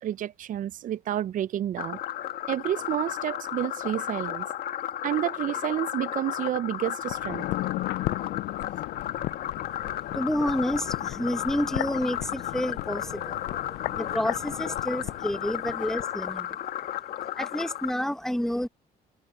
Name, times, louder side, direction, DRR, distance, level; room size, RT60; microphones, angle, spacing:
voice 1, 0.0-2.0 2.5-4.5 5.0-7.5, right 12 dB, 50° right, 0.5 m, -30 dB
sound 1, 1.8-17.9, left 12 dB, 65° left, 1.8 m, -34 dB
sound 2, 7.0-16.1 16.4-16.5, left 18 dB, 80° left, 0.4 m, -35 dB
voice 2, 9.8-16.8 17.3-18.7, equal, 5° left, 1.5 m, -30 dB
cardioid pair, 110°, 17 cm